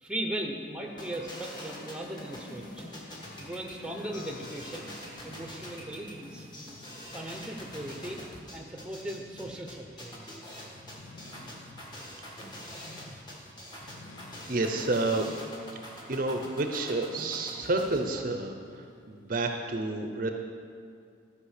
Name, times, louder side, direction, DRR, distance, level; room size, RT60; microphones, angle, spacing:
voice 1, 0.0-2.9 3.4-5.0 5.2-6.8 7.1-8.2 8.5-10.3 11.4-11.6 12.0-12.2, right 1 dB, 5° right, 2 dB, 0.8 m, -38 dB
sound 1, 0.8-6.7, left 4 dB, 50° left, 0.5 m, -51 dB
sound 2, 1.0-18.0, equal, 20° left, 1.5 m, -45 dB
sound 3, 4.4-19.1, left 2 dB, 85° left, 0.7 m, -53 dB
voice 2, 14.5-15.3 16.1-20.3, right 2 dB, 45° right, 5 dB, 0.6 m, -30 dB
13.0 x 5.2 x 6.6 m, 2.4 s
head